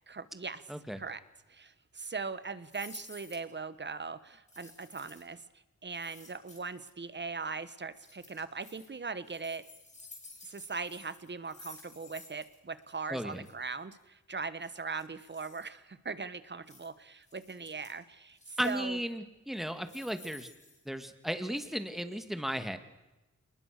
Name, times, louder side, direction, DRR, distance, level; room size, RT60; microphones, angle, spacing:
voice 1, 0.1-0.6 0.9-1.2 1.5-5.4 5.8-9.6 10.4-19.0, right 4 dB, 40° right, 14 dB, 1.3 m, -40 dB
voice 2, 0.7-1.0 13.1-13.5 18.6-20.5 20.9-22.8, equal, ahead, 9 dB, 2.1 m, -35 dB
sound 1, 2.7-3.5 4.5-5.3 5.9-6.9 8.0-8.9 9.2-12.6 12.8-12.9 13.2-13.5 14.6-15.7 16.7-16.9 17.2-18.0 18.3-18.9 19.6-21.3 21.5-21.6, left 2 dB, 25° left, 6.8 m, -53 dB
28.0 x 20.5 x 6.7 m, 1.0 s
wide cardioid pair, 125°, 29 cm